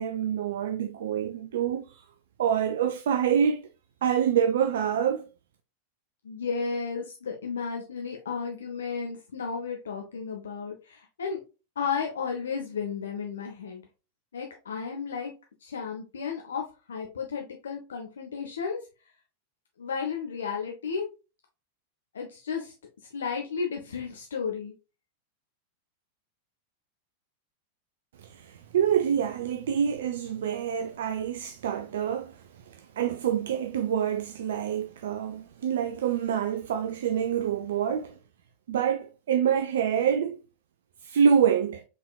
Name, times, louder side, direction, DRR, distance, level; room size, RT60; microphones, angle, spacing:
voice 1, 0.0-2.0 2.4-3.6 4.0-5.3 28.2-38.2 38.7-40.4 41.0-41.8, right 8 dB, 60° right, 0.3 m, -26 dB
voice 2, 6.2-11.4 11.8-13.8 14.3-15.3 15.6-18.8 19.8-21.1 22.1-22.7 23.1-24.7, left 5 dB, 65° left, 0.6 m, -33 dB
4.9 x 3.5 x 2.3 m
figure-of-eight pair, 90°, 0 cm